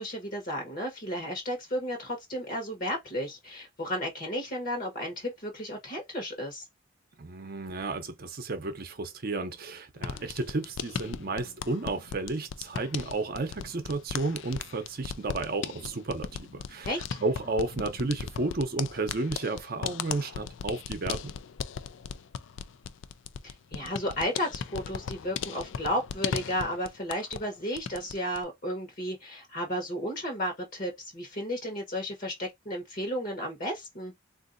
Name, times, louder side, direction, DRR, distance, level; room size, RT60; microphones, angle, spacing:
voice 1, 0.0-6.7 16.8-17.2 23.4-34.1, equal, 45° left, 1.1 m, -33 dB
voice 2, 7.2-16.9 17.2-21.3, right 3 dB, 45° right, 0.7 m, -32 dB
sound 1, 10.0-27.5 27.8-28.4, left 7 dB, 65° left, 0.3 m, -37 dB
3.8 x 2.5 x 2.5 m
head